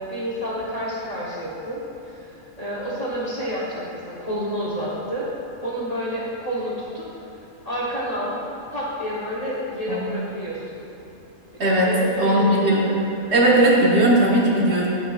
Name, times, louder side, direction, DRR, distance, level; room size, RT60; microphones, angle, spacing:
voice 1, 0.0-2.3 2.6-5.3 5.6-7.1 7.7-8.4 8.7-10.8 11.7-13.3, equal, 35° left, -6 dB, 0.9 m, -29 dB
voice 2, 12.2-12.8 13.3-14.9, right 1 dB, 55° right, -4 dB, 1.4 m, -18 dB
8.7 x 7.8 x 2.3 m, 2.8 s
omnidirectional pair, 1.3 m